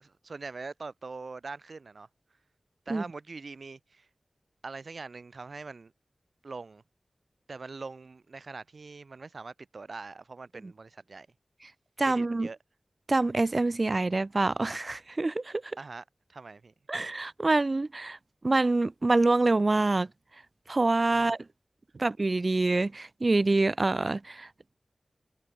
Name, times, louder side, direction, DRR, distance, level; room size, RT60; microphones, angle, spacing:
voice 1, 0.0-2.1 2.9-4.1 4.6-5.9 6.4-6.8 7.5-11.3 12.0-12.6 15.8-16.0 16.3-16.7 21.1-21.4 21.9-22.0, right 4 dB, 65° right, 5.5 m, -43 dB
voice 2, 12.0-12.5 13.1-15.6 16.9-18.2 18.4-20.1 20.7-21.4 22.0-24.5, right 2 dB, 40° right, 0.4 m, -26 dB
wide cardioid pair, 80°, 0 cm